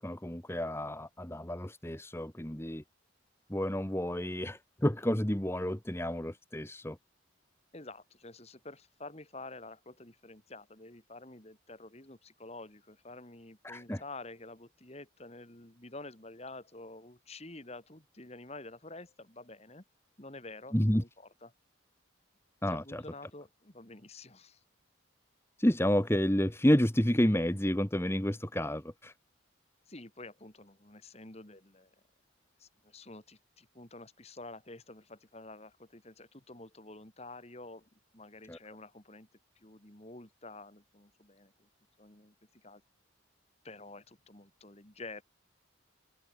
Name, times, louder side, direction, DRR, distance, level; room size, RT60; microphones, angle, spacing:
voice 1, 0.0-2.8 3.5-7.0 13.6-14.0 20.7-21.0 22.6-23.0 25.6-29.1 38.5-38.6, equal, 10° left, 1.4 m, -30 dB
voice 2, 7.7-19.8 20.2-21.5 22.7-24.6 29.9-31.9 32.6-39.3 39.6-41.7 42.0-42.8 43.6-45.2, left 2 dB, 30° left, 2.4 m, -49 dB
open air
head